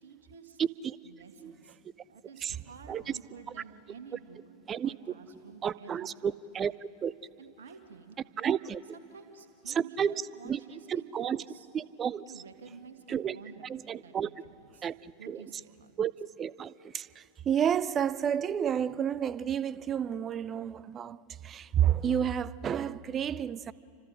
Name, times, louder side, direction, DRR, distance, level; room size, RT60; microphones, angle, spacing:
voice 1, 0.0-0.6 1.0-1.8 2.1-4.4 4.8-6.3 7.4-8.2 9.1-10.0 10.4-11.7 12.3-13.7 14.0-14.9 15.2-15.9, right 6 dB, 65° right, 2.2 m, -50 dB
voice 2, 0.6-1.0 1.4-1.6 2.4-2.6 2.9-3.0 4.7-5.0 5.3-7.1 8.4-8.8 9.7-10.6 10.9-11.4 11.7-12.2 13.1-13.4 13.6-14.3 14.8-15.4 16.0-23.7, right 8 dB, 25° right, 0.5 m, -31 dB
29.0 x 25.5 x 5.1 m
figure-of-eight pair, 90°, 0 cm